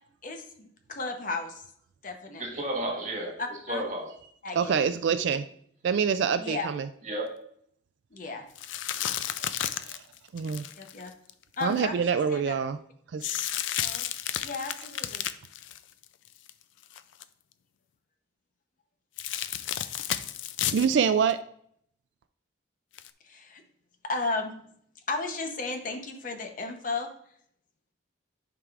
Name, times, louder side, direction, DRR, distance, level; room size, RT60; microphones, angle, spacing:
voice 1, 0.2-1.6 2.0-2.4 3.4-3.8 4.4-4.9 6.4-6.7 8.1-8.4 10.8-11.1 11.6-12.5 13.8-14.1 14.4-15.2 23.2-23.6 24.0-24.5 25.1-27.1, left 3 dB, 45° left, 5 dB, 0.8 m, -34 dB
voice 2, 2.4-4.1 7.0-7.5, right 1 dB, 40° right, 0 dB, 1.6 m, -33 dB
voice 3, 4.5-5.4 5.8-6.9 9.8-10.0 10.3-10.7 11.6-12.8 13.1-13.3 20.7-21.4, right 6 dB, 65° right, 11 dB, 0.3 m, -25 dB
sound 1, 8.6-11.8 13.2-16.5 16.8-17.2 19.2-20.9 21.3-21.4 23.0-23.1, left 11 dB, 75° left, 0.4 m, -32 dB
11.0 x 4.8 x 2.4 m, 0.65 s
head